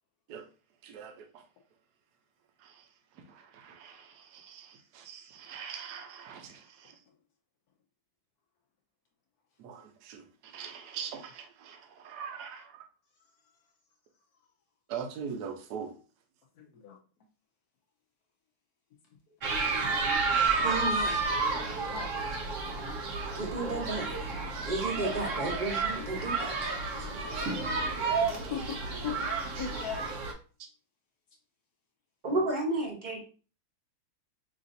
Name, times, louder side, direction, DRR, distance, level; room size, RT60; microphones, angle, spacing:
voice 1, 0.8-1.2 3.5-6.9 9.6-10.2 10.5-12.8 14.9-15.9, right 7 dB, 65° right, 1.0 m, -42 dB
voice 2, 16.6-17.0 21.9-22.1 26.0-26.1 26.9-27.2 28.3-28.8 29.0-29.2 29.5-30.0, left 8 dB, 70° left, 0.9 m, -38 dB
sound 1, 19.4-30.3, right 4 dB, 80° right, 0.7 m, -31 dB
voice 3, 20.6-21.2 23.3-24.0 24.6-26.8 32.2-33.2, right 2 dB, 40° right, 0.7 m, -32 dB
6.0 x 2.5 x 2.6 m
omnidirectional pair, 2.4 m